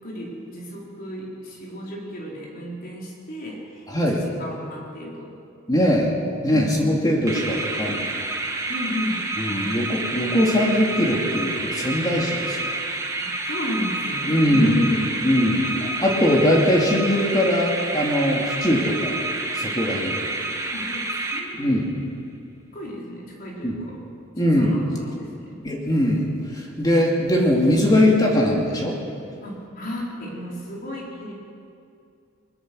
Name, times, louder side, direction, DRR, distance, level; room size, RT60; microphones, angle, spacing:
voice 1, 0.0-5.3 5.8-5.9 6.4-6.7 8.7-9.8 13.5-16.1 20.6-21.8 22.7-24.0 24.3-25.6 29.4-31.3, left 1 dB, 45° left, -3 dB, 4.9 m, -33 dB
voice 2, 3.9-4.2 5.7-6.1 6.4-8.2 9.4-12.8 14.2-14.7 15.2-15.6 16.0-19.2 19.6-20.3 21.6-22.0 23.6-23.7 24.4-24.8 25.6-29.0, left 1 dB, 20° left, -1 dB, 2.6 m, -21 dB
sound 1, 7.3-21.9, right 2 dB, 15° right, 1.8 m, -29 dB
22.0 x 21.0 x 6.4 m, 2.5 s
head